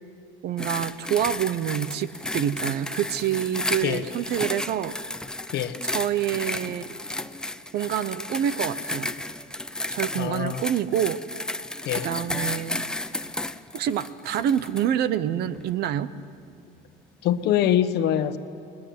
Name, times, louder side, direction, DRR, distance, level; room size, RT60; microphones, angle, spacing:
voice 1, 0.4-5.0 5.8-6.8 7.7-9.1 9.9-11.2 11.9-12.8 13.7-16.1, right 10 dB, 50° right, 15 dB, 0.9 m, -27 dB
sound 1, 0.6-14.9 15.5-15.7, left 1 dB, 5° left, 0.6 m, -33 dB
voice 2, 10.2-10.6 11.8-12.1 17.2-18.4, left 10 dB, 55° left, 11 dB, 1.3 m, -24 dB
29.5 x 21.0 x 9.5 m, 2.4 s
cardioid pair, 170°, 21 cm